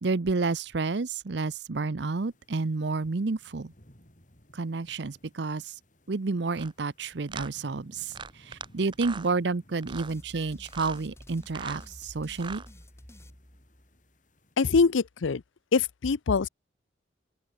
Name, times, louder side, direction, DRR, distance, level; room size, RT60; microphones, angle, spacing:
voice 1, 0.0-3.7 4.5-5.7 6.1-12.6, right 3 dB, 65° right, 0.7 m, -30 dB
sound 1, 2.1-14.6, equal, 40° left, 7.4 m, -60 dB
sound 2, 6.5-6.7 7.3-7.5 8.1-8.7 8.9-9.3 9.8-10.1 10.7-11.0 11.4-11.9 12.3-12.7, right 5 dB, 25° right, 0.8 m, -40 dB
sound 3, 9.9-14.2, equal, 15° left, 2.2 m, -50 dB
voice 2, 14.6-15.4 15.7-16.5, left 4 dB, 85° left, 0.6 m, -24 dB
open air
head